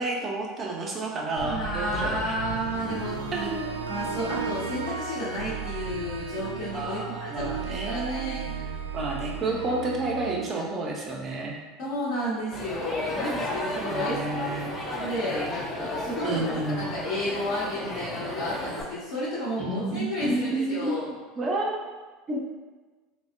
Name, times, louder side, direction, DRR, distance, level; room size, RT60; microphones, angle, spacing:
voice 1, 0.0-2.3 3.3-3.7 6.7-11.6 13.9-14.8 16.2-17.0 19.6-21.0 21.4-21.8 22.3-22.4, right 2 dB, 35° right, -1 dB, 0.6 m, -30 dB
voice 2, 1.4-3.5 3.8-8.6 9.5-9.6 10.2-10.3 10.5-10.6 11.8-16.4 16.7-21.1, equal, 60° left, -12 dB, 0.9 m, -32 dB
sound 1, 1.4-11.5, right 5 dB, 85° right, 0.3 m, -35 dB
Crowd, 12.5-18.8, left 1 dB, 25° left, 0.6 m, -34 dB
3.3 x 2.1 x 2.5 m, 1.4 s
hypercardioid pair, 75°, 0 cm